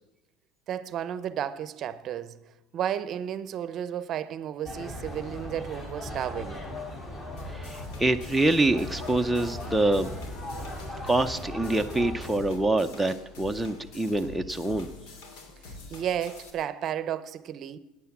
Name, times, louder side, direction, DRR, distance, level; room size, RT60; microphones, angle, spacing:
voice 1, 0.7-2.4 2.7-6.6 15.7-17.8, right 10 dB, 45° right, 0.7 m, -33 dB
sound 1, 4.6-12.3, left 1 dB, 25° left, 3.9 m, -38 dB
sound 2, 7.4-16.5, left 3 dB, 80° left, 2.7 m, -45 dB
voice 2, 7.5-10.1 11.0-14.9, right 2 dB, 5° right, 0.6 m, -25 dB
13.0 x 9.7 x 8.4 m
cardioid pair, 130°, 0 cm